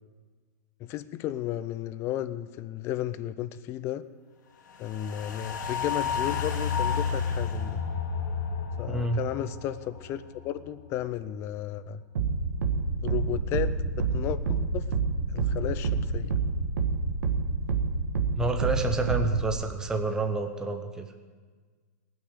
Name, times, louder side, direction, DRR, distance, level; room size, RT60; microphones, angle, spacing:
voice 1, 0.8-4.0 4.8-7.8 8.8-12.0 13.0-14.9 15.3-16.4, left 12 dB, 25° left, 13 dB, 0.5 m, -34 dB
sound 1, 4.8-11.2 11.5-11.6, left 6 dB, 80° left, 2.2 m, -31 dB
voice 2, 8.9-9.2 18.3-21.1, right 2 dB, 5° right, 5 dB, 0.7 m, -29 dB
sound 2, 12.2-19.5, right 4 dB, 75° right, 1.6 m, -28 dB
19.0 x 6.4 x 8.2 m, 1.5 s
hypercardioid pair, 155°, 10 cm